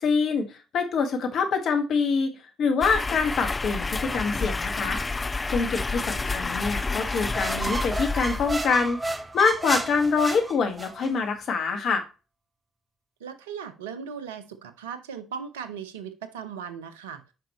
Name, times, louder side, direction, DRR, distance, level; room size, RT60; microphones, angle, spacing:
voice 1, 0.0-5.0 5.5-12.0, left 5 dB, 60° left, 5 dB, 1.8 m, -25 dB
sound 1, 2.8-8.8, left 3 dB, 25° left, 0.3 m, -29 dB
voice 2, 6.0-6.4 13.2-17.2, right 7 dB, 85° right, 11 dB, 0.7 m, -38 dB
sound 2, 7.0-11.1, right 2 dB, 20° right, 0.9 m, -32 dB
9.0 x 5.0 x 3.1 m, 0.30 s
hypercardioid pair, 50°, 0 cm